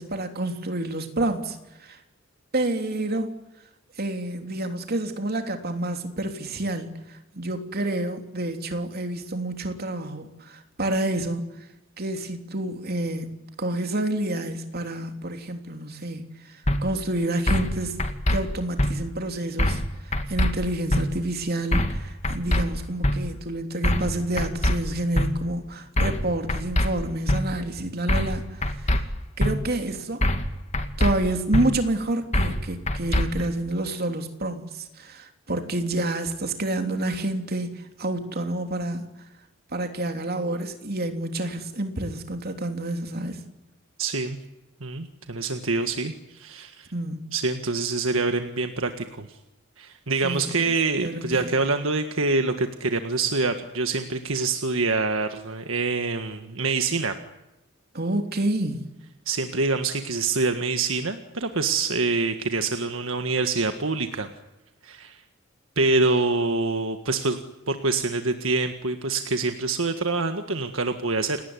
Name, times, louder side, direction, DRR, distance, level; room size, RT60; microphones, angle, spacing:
voice 1, 0.0-2.0 2.5-3.3 4.0-11.5 12.0-18.0 18.3-28.9 29.4-30.3 31.0-39.0 39.7-43.4 46.9-47.3 50.2-50.8 51.0-51.5 57.9-58.8, right 1 dB, 50° right, 3.3 m, -29 dB
sound 1, 16.7-16.8 17.5-17.7 18.0-18.4 18.8-18.9 19.6-19.9 20.1-20.5 20.9-21.0 21.7-22.0 22.2-22.6 23.0-23.2 23.8-24.1 24.4-24.7 25.1-25.3 26.0-26.2 26.5-26.9 27.3-27.4 28.1-28.4 28.6-29.0 29.4-29.5 30.2-30.5 30.7-31.1 31.5-31.6 32.3-32.6 32.9-33.2, left 1 dB, 35° left, 2.4 m, -22 dB
voice 2, 44.0-44.4 44.8-46.9 47.3-49.3 49.8-57.1 59.3-64.3 64.8-65.2 65.8-67.4 67.7-71.4, right 3 dB, 70° right, 1.7 m, -25 dB
29.5 x 19.0 x 9.8 m
head